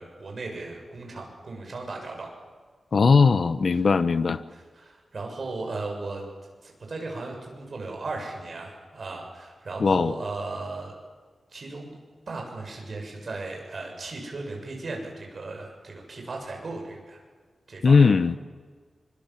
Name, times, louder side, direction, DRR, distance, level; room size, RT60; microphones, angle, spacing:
voice 1, 0.0-2.4 3.7-3.8 4.5-6.2 6.6-11.0 11.5-12.0 12.3-17.2 17.7-18.1, right 3 dB, 45° right, 1 dB, 7.1 m, -36 dB
voice 2, 2.9-4.4 9.8-10.1 17.8-18.4, left 4 dB, 55° left, 12 dB, 1.0 m, -19 dB
25.0 x 24.5 x 7.6 m, 1.5 s
wide cardioid pair, 160°, 0 cm